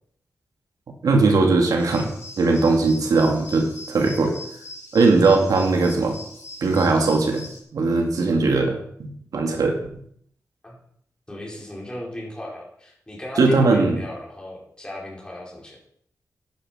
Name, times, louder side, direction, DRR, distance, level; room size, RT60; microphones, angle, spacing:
voice 1, 1.0-4.3 4.9-6.2 6.6-7.4 7.7-9.8 13.4-14.0, right 3 dB, 85° right, 2 dB, 2.2 m, -19 dB
sound 1, 1.8-7.6, left 1 dB, 50° left, 3.2 m, -41 dB
voice 2, 11.3-15.8, left 1 dB, 15° left, -3 dB, 4.4 m, -37 dB
11.0 x 9.8 x 5.0 m, 0.66 s
wide cardioid pair, 135°, 6 cm